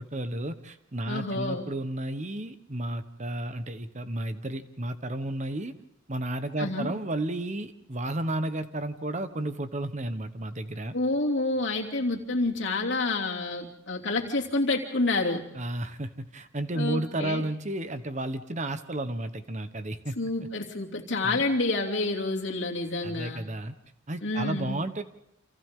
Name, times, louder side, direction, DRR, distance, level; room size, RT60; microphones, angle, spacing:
voice 1, 0.0-5.7 6.1-11.0 15.5-20.2 21.2-21.4 23.0-23.7 24.1-25.0, right 1 dB, 35° right, 10 dB, 1.1 m, -32 dB
voice 2, 1.0-1.7 6.6-6.9 10.9-15.4 16.7-17.4 20.2-23.4 24.2-24.7, left 2 dB, 60° left, -1 dB, 2.9 m, -28 dB
29.0 x 27.5 x 3.8 m, 0.77 s
head